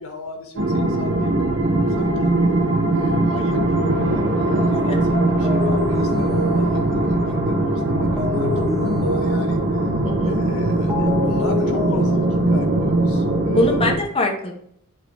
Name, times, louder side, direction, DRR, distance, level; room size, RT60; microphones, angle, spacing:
voice 1, 0.0-2.3 2.9-9.6 10.2-13.9, left 3 dB, 75° left, 3 dB, 1.7 m, -36 dB
sound 1, 0.6-14.0, right 2 dB, 55° right, 1.2 m, -20 dB
sound 2, 4.1-4.4 5.4-7.2 8.2-9.9 10.9-12.6, left 5 dB, ahead, 1.3 m, -28 dB
voice 2, 10.0-10.4 13.5-14.5, left 2 dB, 25° left, 1 dB, 1.2 m, -22 dB
7.6 x 3.9 x 4.8 m, 0.68 s
head